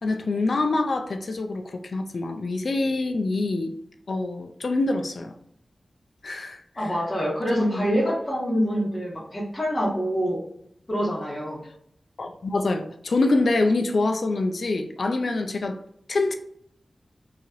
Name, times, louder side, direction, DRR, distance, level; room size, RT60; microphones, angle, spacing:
voice 1, 0.0-3.7 4.1-5.3 6.2-6.9 7.5-7.9 12.2-15.8 16.1-16.3, left 2 dB, 65° left, 0.3 m, -25 dB
voice 2, 6.8-10.4 10.9-11.6, equal, 25° left, 1.3 m, -26 dB
3.1 x 2.7 x 2.4 m
wide cardioid pair, 95°, 0 cm